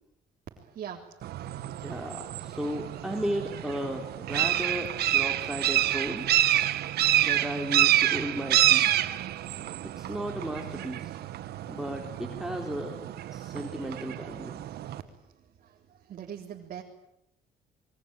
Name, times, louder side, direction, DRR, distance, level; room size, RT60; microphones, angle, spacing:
voice 1, 0.5-1.7 15.6-16.8, right 9 dB, 55° right, 0 dB, 3.8 m, -43 dB
sound 1, 1.2-15.0, right 13 dB, 70° right, 1.6 m, -28 dB
voice 2, 1.8-6.3 7.2-9.2 10.0-11.2 11.7-13.1 13.3-14.6, equal, 5° right, 2 dB, 3.8 m, -35 dB
27.5 x 23.0 x 9.1 m, 0.81 s
cardioid pair, 110°, 17 cm